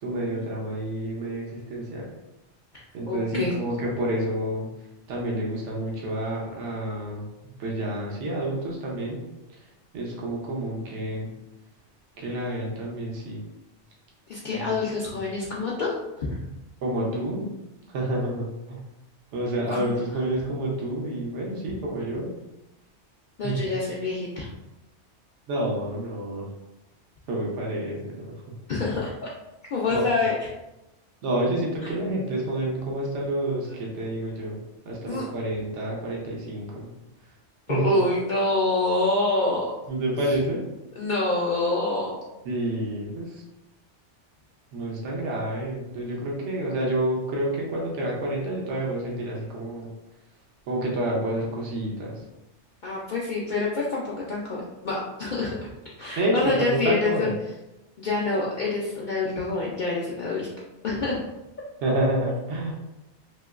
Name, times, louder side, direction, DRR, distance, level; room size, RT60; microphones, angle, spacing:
voice 1, 0.0-2.1 2.9-4.7 5.1-7.3 7.6-9.2 9.9-11.3 12.2-13.4 14.5-14.6 16.8-17.5 17.9-18.8 19.3-22.3 23.4-23.7 25.5-26.5 27.3-28.2 29.9-30.1 31.2-36.9 37.7-37.8 39.9-40.6 42.4-43.4 44.7-49.9 50.7-52.1 56.2-57.3 61.8-62.7, right 1 dB, 80° right, -3 dB, 1.0 m, -29 dB
voice 2, 3.1-3.5 14.3-16.4 19.7-19.9 23.4-24.5 28.7-29.3 29.7-30.3 35.1-35.2 37.7-39.7 40.3-40.4 41.0-42.1 52.8-54.6 54.8-55.7 56.0-57.3 58.0-60.5 60.8-61.2, left 3 dB, 60° left, -5 dB, 0.5 m, -26 dB
3.0 x 2.9 x 2.3 m, 0.94 s
omnidirectional pair, 1.2 m